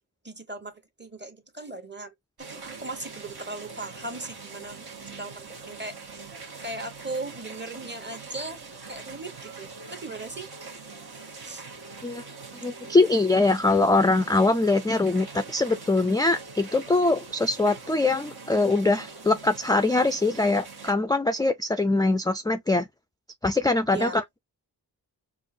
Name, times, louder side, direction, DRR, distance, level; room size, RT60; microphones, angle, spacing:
voice 1, 0.2-6.3 6.6-10.5 11.4-11.7 23.9-24.2, right 2 dB, 25° right, 1.1 m, -38 dB
sound 1, 2.4-20.9, right 4 dB, 60° right, 1.2 m, -43 dB
voice 2, 12.6-22.9 23.4-24.4, left 2 dB, 10° left, 0.3 m, -23 dB
4.6 x 2.5 x 2.6 m
cardioid pair, 45°, 42 cm